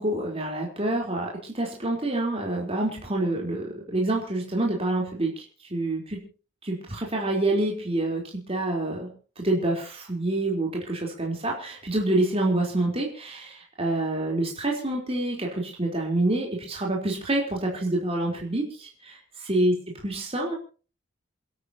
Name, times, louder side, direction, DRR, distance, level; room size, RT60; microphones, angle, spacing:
voice 1, 0.0-5.3 5.7-6.2 6.6-9.1 9.4-19.7 20.0-20.5, right 2 dB, 30° right, -1 dB, 4.1 m, -27 dB
28.5 x 12.5 x 3.0 m, 0.38 s
head